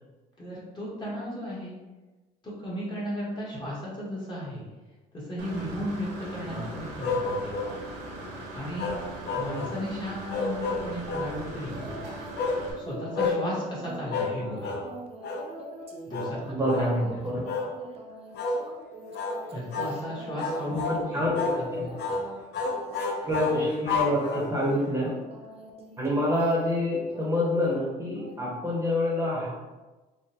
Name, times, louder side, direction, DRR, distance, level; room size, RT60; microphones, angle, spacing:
voice 1, 0.4-1.7 2.4-4.6 5.1-7.6 8.5-9.0 9.3-11.8 12.8-14.9 16.1-17.1 17.6-17.7 19.5-21.2 21.5-22.2 22.5-22.6 23.2-23.3, equal, 25° left, -6 dB, 1.1 m, -35 dB
Engine / Mechanisms, 5.4-12.7, right 1 dB, 80° right, 0.8 m, -40 dB
sound 1, 7.0-7.8 8.8-9.8 10.3-11.3 12.4-12.6 13.1-13.4 14.1-14.4 14.6-14.9 15.2-15.5 16.1-16.3 16.6-16.9 17.4-17.7 18.3-18.6 19.1-19.4 19.7-20.0 20.4-21.0 21.3-21.6 22.0-22.2 22.5-24.7, left 4 dB, 80° left, 0.6 m, -30 dB
sound 2, 11.7-12.4 12.7-20.7 21.1-22.4 22.7-23.1 23.4-26.8 27.1-27.7 28.2-28.3, right 2 dB, 35° right, 0.5 m, -44 dB
voice 2, 16.5-17.5 19.5-19.6 20.7-21.9 23.2-25.1 26.0-29.5, left 1 dB, 15° right, -5 dB, 0.9 m, -27 dB
3.6 x 2.2 x 2.8 m, 1.2 s
cardioid pair, 110°, 17 cm